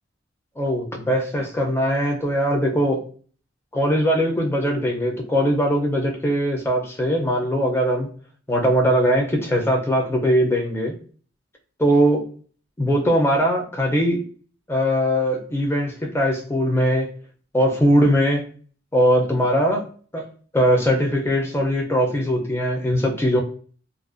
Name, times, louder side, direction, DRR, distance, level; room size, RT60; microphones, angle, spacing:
voice 1, 0.6-3.0 3.7-8.1 8.5-10.9 11.8-12.2 12.8-14.2 14.7-17.1 17.5-18.5 18.9-19.8 20.1-20.2 20.5-23.4, equal, 10° left, 1 dB, 0.4 m, -20 dB
2.4 x 2.1 x 2.4 m, 0.43 s
head